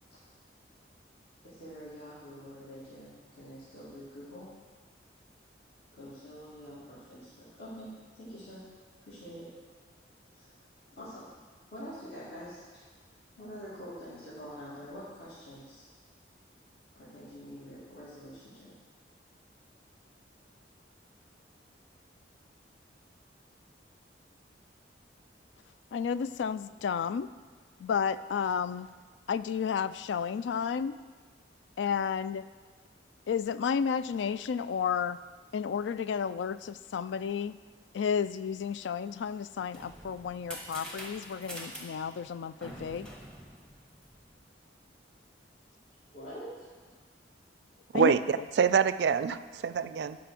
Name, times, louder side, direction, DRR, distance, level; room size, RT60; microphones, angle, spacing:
voice 1, 1.4-4.5 5.9-8.6 9.0-9.5 10.3-10.5 10.9-11.3 11.7-12.8 13.3-15.8 16.9-18.8 46.1-46.7, equal, 55° left, -11 dB, 2.6 m, -46 dB
voice 2, 25.9-27.3 27.8-28.9 29.3-31.0 31.8-32.4 33.3-35.2 35.5-37.6 37.9-43.1 47.9-48.1, left 7 dB, 80° left, 15 dB, 0.3 m, -32 dB
sound 1, 39.5-44.4, equal, 5° left, 1.1 m, -45 dB
voice 3, 47.9-50.2, right 6 dB, 65° right, 14 dB, 0.3 m, -26 dB
10.5 x 5.2 x 5.9 m, 1.5 s
head